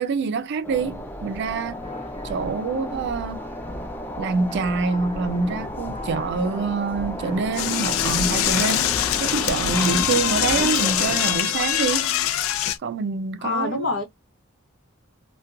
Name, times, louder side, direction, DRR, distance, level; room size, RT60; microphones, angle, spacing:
voice 1, 0.0-1.8 2.2-3.4 4.2-8.9 9.2-12.1 12.8-13.9, right 4 dB, 60° right, 0.4 m, -26 dB
sound 1, 0.6-11.4, left 1 dB, 10° left, 0.4 m, -34 dB
sound 2, 1.6-11.9, left 2 dB, 40° left, 0.7 m, -40 dB
Door / Toilet flush, 7.5-12.8, left 11 dB, 90° left, 0.3 m, -23 dB
voice 2, 13.4-14.0, left 3 dB, 75° left, 0.9 m, -25 dB
2.5 x 2.2 x 2.4 m
head